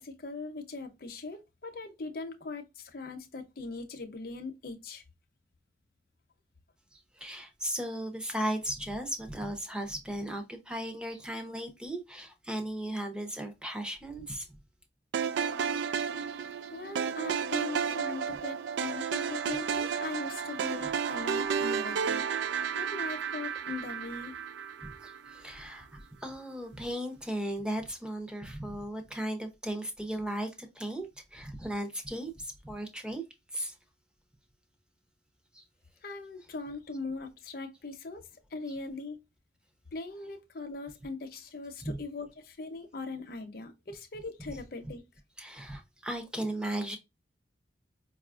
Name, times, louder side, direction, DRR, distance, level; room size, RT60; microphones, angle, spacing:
voice 1, 0.0-5.0 16.7-22.3 22.7-24.4 36.0-39.2 39.9-45.0, left 3 dB, 55° left, 0.7 m, -40 dB
voice 2, 6.9-14.5 24.8-33.2 33.5-33.7 35.5-35.6 41.8-42.0 45.4-47.0, right 1 dB, 5° right, 0.7 m, -36 dB
sound 1, 15.1-25.4, right 7 dB, 80° right, 0.3 m, -32 dB
5.0 x 2.4 x 2.4 m
head